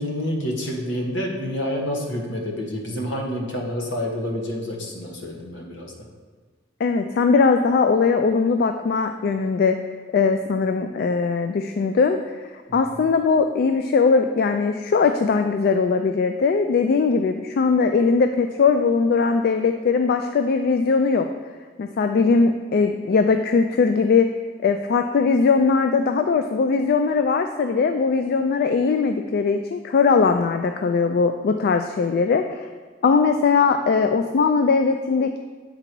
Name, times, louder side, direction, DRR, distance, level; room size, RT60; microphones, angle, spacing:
voice 1, 0.0-5.9, equal, 70° left, 0 dB, 1.2 m, -28 dB
voice 2, 6.8-9.8 10.1-12.2 12.7-21.3 21.8-24.3 24.6-32.7 33.0-35.4, left 4 dB, 55° left, 7 dB, 0.3 m, -20 dB
8.3 x 3.9 x 4.5 m, 1.5 s
head